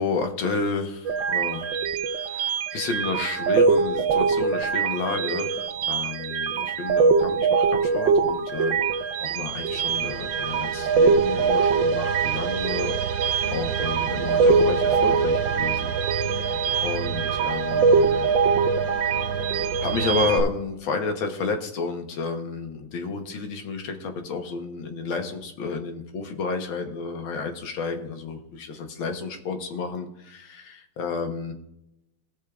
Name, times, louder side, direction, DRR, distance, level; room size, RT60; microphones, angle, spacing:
voice 1, 0.0-16.0 16.4-18.3 19.8-31.5, left 4 dB, 75° left, 5 dB, 1.8 m, -31 dB
sound 1, 1.1-20.4, right 5 dB, 70° right, 1.3 m, -23 dB
17.0 x 6.4 x 2.4 m, 0.84 s
omnidirectional pair, 2.3 m